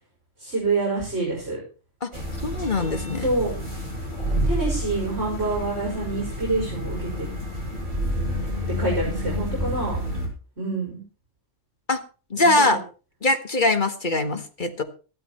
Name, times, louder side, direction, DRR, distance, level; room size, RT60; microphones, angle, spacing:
voice 1, 0.4-1.6 3.2-3.6 4.4-7.3 8.8-10.0 10.6-11.0 12.4-12.8, right 2 dB, 60° right, -2 dB, 5.9 m, -27 dB
sound 1, 2.1-10.3, equal, 40° right, 7.6 m, -29 dB
voice 2, 2.4-3.2 11.9-12.0 12.3-12.8 13.2-14.8, left 2 dB, 40° left, 7 dB, 1.6 m, -22 dB
14.5 x 13.0 x 4.4 m, 0.35 s
omnidirectional pair, 1.2 m